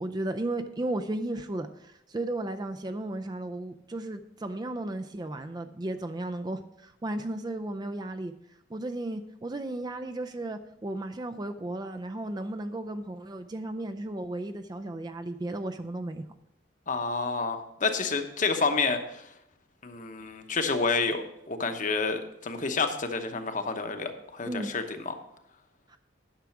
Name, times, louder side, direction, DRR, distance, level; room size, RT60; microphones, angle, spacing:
voice 1, 0.0-8.3 8.7-16.2 24.4-24.7 25.9-26.0, right 1 dB, 20° right, 8 dB, 0.4 m, -34 dB
voice 2, 16.9-19.3 19.8-25.1, left 4 dB, 40° left, 6 dB, 1.0 m, -29 dB
10.5 x 6.1 x 5.9 m, 0.80 s
head